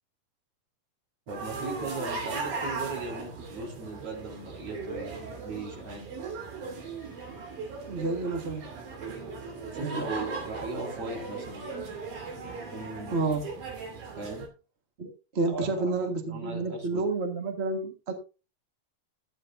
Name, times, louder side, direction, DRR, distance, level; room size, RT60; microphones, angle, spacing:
voice 1, 1.3-6.1 9.2-9.4 9.7-11.7 12.7-13.2 14.2-14.5 15.5-17.0, right 3 dB, 45° right, 1 dB, 4.4 m, -38 dB
sound 1, 1.3-14.5, right 4 dB, 85° right, 4.5 m, -38 dB
voice 2, 7.9-8.6 9.8-10.0 13.1-13.4 15.0-18.1, right 3 dB, 60° right, 4 dB, 0.6 m, -30 dB
14.0 x 9.6 x 2.6 m, 0.32 s
omnidirectional pair, 4.0 m